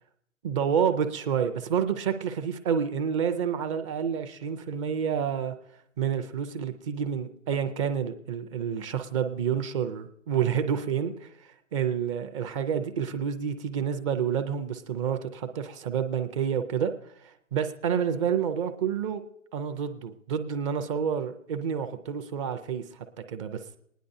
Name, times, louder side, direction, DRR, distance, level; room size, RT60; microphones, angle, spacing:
voice 1, 0.4-5.5 6.0-11.3 11.7-16.9 17.2-19.2 19.5-22.8 23.2-23.6, right 7 dB, 25° right, 8 dB, 0.5 m, -29 dB
27.0 x 10.0 x 2.6 m, 0.74 s
hypercardioid pair, 135°, 40 cm